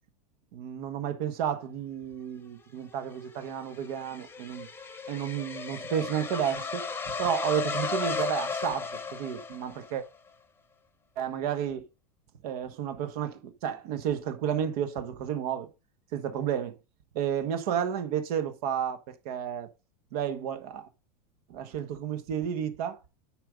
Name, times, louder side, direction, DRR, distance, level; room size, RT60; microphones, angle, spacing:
voice 1, 0.5-4.7 5.1-10.0 11.2-11.9 12.4-15.7 16.1-16.8 17.1-19.7 20.1-20.9 21.5-23.0, right 9 dB, 65° right, 1.5 m, -32 dB
sound 1, 2.9-10.0, left 5 dB, 10° left, 0.9 m, -35 dB
9.0 x 4.9 x 5.2 m
supercardioid pair, 125°, 21 cm